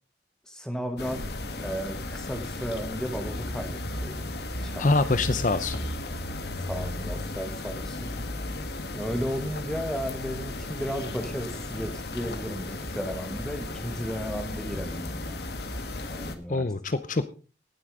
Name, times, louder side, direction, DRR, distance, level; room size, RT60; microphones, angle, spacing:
voice 1, 0.5-1.3 1.6-4.2 4.6-4.9 6.6-8.1 8.9-15.4 16.0-16.7, equal, 5° left, 5 dB, 2.0 m, -34 dB
sound 1, 1.0-16.4, left 2 dB, 65° left, 1.7 m, -35 dB
voice 2, 4.8-5.8 16.5-17.3, left 3 dB, 45° left, 12 dB, 0.7 m, -24 dB
18.5 x 8.1 x 5.0 m, 0.36 s
head